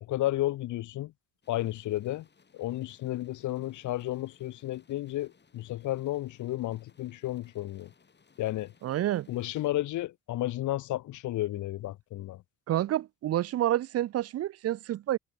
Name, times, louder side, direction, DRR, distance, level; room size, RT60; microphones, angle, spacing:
voice 1, 0.0-1.1 1.5-2.3 2.5-7.9 8.4-8.7 9.3-12.4, left 15 dB, 75° left, 0.9 m, -32 dB
sound 1, 1.4-9.7, left 5 dB, 35° left, 6.4 m, -64 dB
voice 2, 8.8-9.3 12.7-15.2, right 13 dB, 55° right, 0.5 m, -28 dB
cardioid pair, 90°, 30 cm